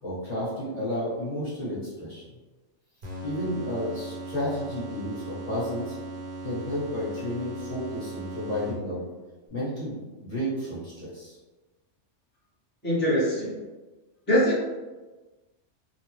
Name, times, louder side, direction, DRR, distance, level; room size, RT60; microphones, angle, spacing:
voice 1, 0.0-2.2 3.2-5.9 6.4-9.0 9.5-11.4, left 1 dB, 30° left, -11 dB, 1.2 m, -32 dB
sound 1, 3.0-9.1, right 2 dB, 50° right, 0.8 m, -38 dB
voice 2, 12.8-13.6 14.3-14.6, equal, 10° left, -11 dB, 1.0 m, -23 dB
3.1 x 2.1 x 3.1 m, 1.2 s
omnidirectional pair, 1.3 m